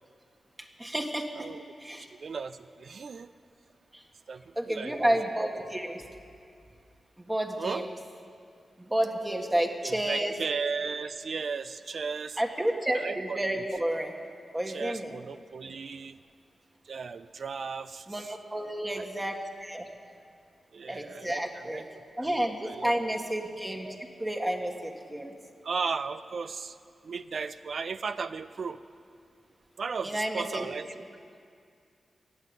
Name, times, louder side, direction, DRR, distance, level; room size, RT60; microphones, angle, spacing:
voice 1, 0.8-1.5 1.8-2.1 3.9-4.0 4.5-6.0 7.2-7.9 8.8-10.3 12.4-14.1 14.5-15.2 18.1-19.8 20.9-21.8 22.2-25.3 30.0-30.7, right 1 dB, 20° right, 2 dB, 1.6 m, -31 dB
voice 2, 2.1-3.3 4.3-5.2 7.6-7.8 9.8-12.4 12.9-13.4 14.7-16.2 16.9-18.3 18.9-19.1 20.7-21.4 21.7-21.8 22.2-22.3 22.6-22.9 25.6-26.8 27.0-28.8 29.8-30.9, right 5 dB, 65° right, 12 dB, 0.4 m, -35 dB
16.5 x 7.4 x 9.5 m, 2.3 s
cardioid pair, 55°, 0 cm